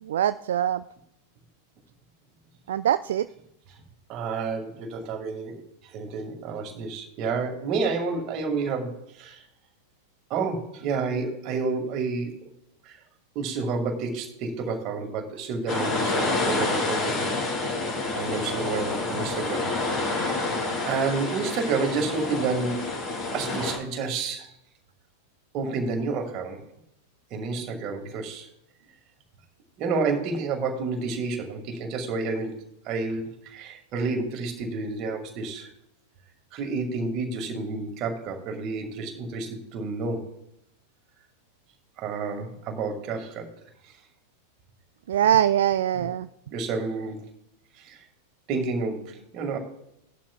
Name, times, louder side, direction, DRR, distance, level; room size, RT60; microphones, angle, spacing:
voice 1, 0.0-0.8 2.7-3.3 45.1-46.3, right 10 dB, 60° right, 13 dB, 0.3 m, -23 dB
voice 2, 4.1-9.4 10.3-12.4 12.8-13.0 13.3-17.5 18.2-19.7 20.1-20.5 20.9-22.9 23.3-24.5 25.5-26.6 27.3-28.5 29.8-35.7 36.5-40.3 42.0-43.5 43.8-44.0 46.0-46.1 46.5-47.3 47.7-48.0 48.5-49.6, right 4 dB, 40° right, 3 dB, 2.4 m, -30 dB
sound 1, 15.7-23.8, left 2 dB, 30° left, 3.6 m, -28 dB
18.0 x 11.5 x 2.5 m, 0.80 s
figure-of-eight pair, 90°, 0 cm